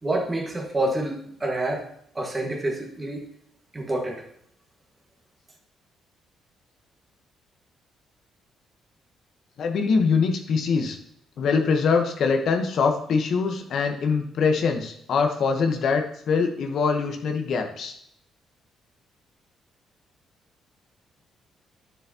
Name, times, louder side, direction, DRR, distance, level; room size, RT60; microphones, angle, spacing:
voice 1, 0.0-1.9 2.1-3.3 3.7-4.2, right 1 dB, 25° right, 2 dB, 1.6 m, -27 dB
voice 2, 9.6-11.0 11.4-17.9, left 5 dB, 65° left, 5 dB, 1.0 m, -23 dB
9.7 x 7.0 x 2.9 m, 0.69 s
cardioid pair, 90°, 0 cm